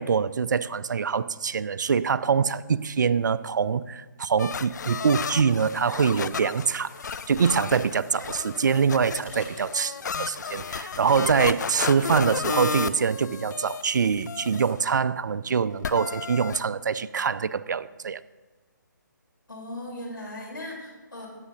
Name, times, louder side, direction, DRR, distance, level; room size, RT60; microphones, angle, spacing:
voice 1, 0.0-6.9 7.3-18.2, right 6 dB, 65° right, 16 dB, 0.4 m, -24 dB
sound 1, 4.4-13.8 14.1-15.0 15.8-16.6, left 6 dB, 65° left, 0.4 m, -33 dB
Water / Bathtub (filling or washing), 5.5-14.7, left 3 dB, 15° left, 1.5 m, -51 dB
voice 2, 19.5-21.3, left 1 dB, 90° left, -1 dB, 3.8 m, -38 dB
16.5 x 8.3 x 2.7 m, 1.3 s
figure-of-eight pair, 150°, 11 cm